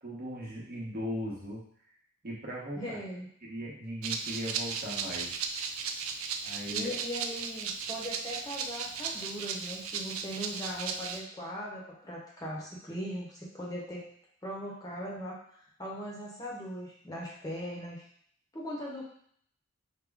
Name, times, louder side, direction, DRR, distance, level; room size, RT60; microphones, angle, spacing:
voice 1, 0.0-1.6 2.2-3.0 3.4-5.4 6.4-6.9, equal, 45° right, -4 dB, 1.0 m, -38 dB
voice 2, 2.7-3.3 6.7-14.1 14.4-18.1 18.5-19.1, equal, 20° left, -4 dB, 0.8 m, -39 dB
Rattle (instrument), 4.0-11.2, right 6 dB, 80° right, 0.4 m, -36 dB
5.1 x 2.1 x 3.5 m, 0.63 s
head